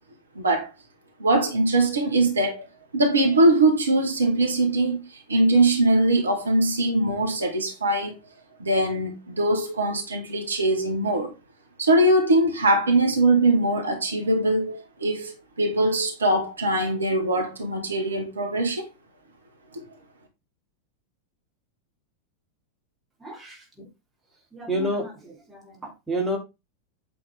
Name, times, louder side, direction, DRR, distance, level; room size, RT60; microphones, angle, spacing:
voice 1, 0.4-0.7 1.2-2.7 2.9-8.1 8.6-11.3 11.8-18.9 19.7-19.8, right 2 dB, 75° right, 1.9 m, -22 dB
voice 2, 23.2-23.9 24.5-26.4, equal, 10° right, 3.2 m, -30 dB
8.6 x 6.3 x 3.6 m
figure-of-eight pair, 90°, 0 cm